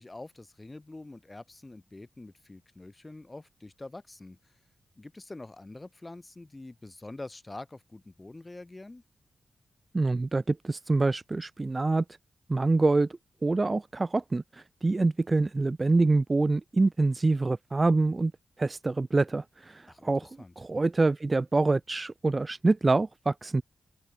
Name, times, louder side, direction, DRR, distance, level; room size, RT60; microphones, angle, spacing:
voice 1, 0.0-4.5 5.0-9.0 19.9-20.5, left 2 dB, 25° left, 1.4 m, -45 dB
voice 2, 9.9-12.0 12.5-13.1 13.4-18.3 18.6-20.3 20.6-23.6, right 3 dB, 30° right, 0.3 m, -26 dB
open air
cardioid pair, 70°, 0 cm